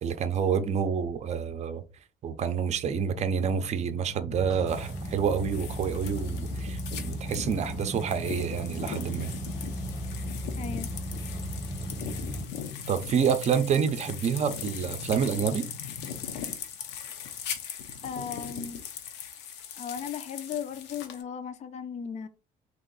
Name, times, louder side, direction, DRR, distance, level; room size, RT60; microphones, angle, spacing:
voice 1, 0.0-1.8 2.2-9.3 12.9-15.7, right 7 dB, 40° right, 0.5 m, -28 dB
sound 1, 2.8-16.4, left 3 dB, 75° left, 1.1 m, -44 dB
sound 2, 4.3-12.4, right 1 dB, 25° right, 0.9 m, -36 dB
sound 3, 4.7-21.2, left 8 dB, 90° left, 0.7 m, -40 dB
voice 2, 10.6-10.9 18.0-18.8 19.8-22.3, left 7 dB, 40° left, 0.5 m, -36 dB
3.0 x 2.6 x 3.9 m
cardioid pair, 110°, 17 cm